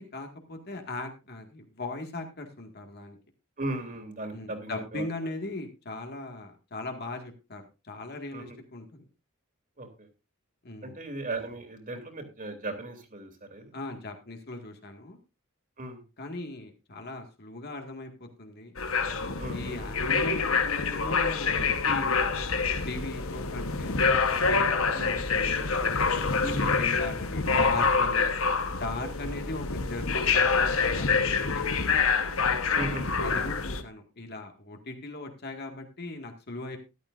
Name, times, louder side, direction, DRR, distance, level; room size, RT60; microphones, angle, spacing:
voice 1, 0.0-3.2 4.3-9.0 10.6-11.0 13.7-15.2 16.2-18.7 19.5-22.2 22.9-24.0 24.3-25.7 26.1-28.3 28.7-32.0 33.2-36.8, left 2 dB, 50° left, 4 dB, 2.0 m, -39 dB
voice 2, 3.6-5.1 8.3-8.6 9.8-10.1 10.8-13.7 15.8-16.0 19.4-19.8 24.9-25.1 26.4-26.7 29.0-29.3 32.7-33.0, right 2 dB, 40° right, 4 dB, 2.9 m, -37 dB
sound 1, 18.8-33.8, left 5 dB, 70° left, 1.2 m, -26 dB
13.5 x 12.0 x 2.6 m, 0.28 s
head